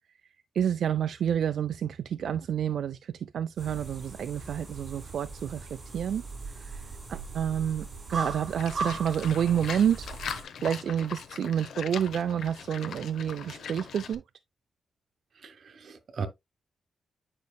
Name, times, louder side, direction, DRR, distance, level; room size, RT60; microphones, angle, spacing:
voice 1, 0.5-6.2 6.5-14.2, right 9 dB, 65° right, 0.3 m, -29 dB
sound 1, 3.6-10.4, right 4 dB, 30° right, 3.5 m, -39 dB
Livestock farm animals working animals, 8.6-14.1, left 7 dB, 85° left, 0.8 m, -40 dB
voice 2, 15.4-16.3, right 5 dB, 50° right, 1.1 m, -37 dB
9.4 x 5.3 x 2.3 m
wide cardioid pair, 175°, 0 cm